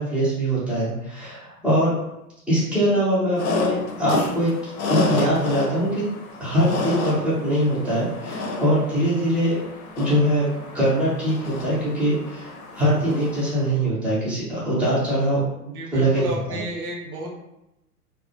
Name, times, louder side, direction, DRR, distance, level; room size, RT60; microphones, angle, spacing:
voice 1, 0.0-1.9 2.5-6.1 6.4-9.6 10.0-10.5 10.7-15.4 15.9-16.2 16.5-16.6, equal, ahead, -17 dB, 0.5 m, -22 dB
sound 1, 3.4-13.7, left 3 dB, 60° left, 0.6 m, -31 dB
voice 2, 15.6-17.3, right 2 dB, 65° right, -1 dB, 0.8 m, -32 dB
2.3 x 2.1 x 2.6 m, 0.88 s
figure-of-eight pair, 105°, 47 cm